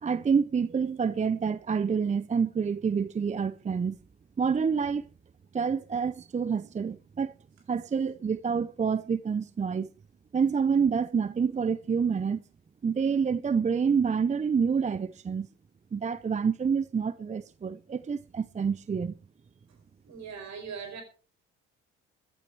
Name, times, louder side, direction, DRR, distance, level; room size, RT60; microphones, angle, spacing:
voice 1, 0.0-4.0 4.4-5.0 5.5-7.3 7.7-9.9 10.3-12.4 12.8-15.5 15.9-19.1, right 6 dB, 20° right, 0.6 m, -27 dB
voice 2, 20.0-21.0, right 6 dB, 60° right, 4.9 m, -40 dB
14.5 x 11.5 x 4.5 m
hypercardioid pair, 50°, 32 cm